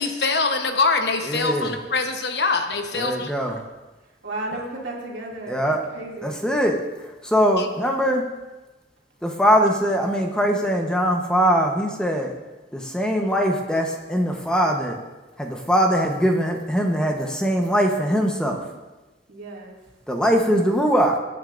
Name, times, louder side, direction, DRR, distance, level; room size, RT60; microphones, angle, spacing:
voice 1, 0.0-3.3 7.6-7.7, left 4 dB, 65° left, 5 dB, 1.0 m, -23 dB
voice 2, 1.3-1.7 2.9-3.6 5.5-5.8 6.2-6.8 7.2-8.2 9.2-12.3 12.7-15.0 15.4-18.6 20.1-21.2, equal, 5° left, 2 dB, 0.9 m, -21 dB
voice 3, 4.2-6.4 19.3-19.8, right 2 dB, 85° right, -2 dB, 2.5 m, -34 dB
21.0 x 9.3 x 2.6 m, 1.2 s
head